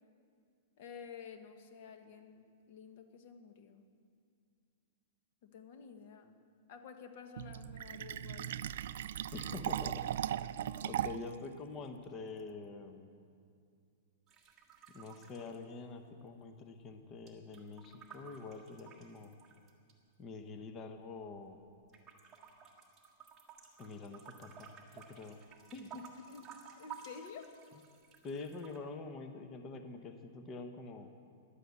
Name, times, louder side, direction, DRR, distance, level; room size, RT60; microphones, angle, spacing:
voice 1, 0.8-3.8 5.4-6.4 6.7-8.6 26.3-26.4 26.8-27.5, left 6 dB, 45° left, 6 dB, 1.3 m, -51 dB
Fill (with liquid), 7.4-11.4, right 11 dB, 60° right, 0.4 m, -38 dB
voice 2, 9.3-10.0 10.8-13.2 14.9-19.3 20.2-21.6 23.8-25.4 25.7-26.0 28.2-31.1, left 3 dB, 20° left, 6 dB, 0.8 m, -46 dB
sound 1, 14.3-16.3 16.6-19.9 20.6-21.5 21.9-28.8, right 7 dB, 15° right, 1.6 m, -55 dB
15.0 x 11.5 x 8.2 m, 2.3 s
supercardioid pair, 175°, 0 cm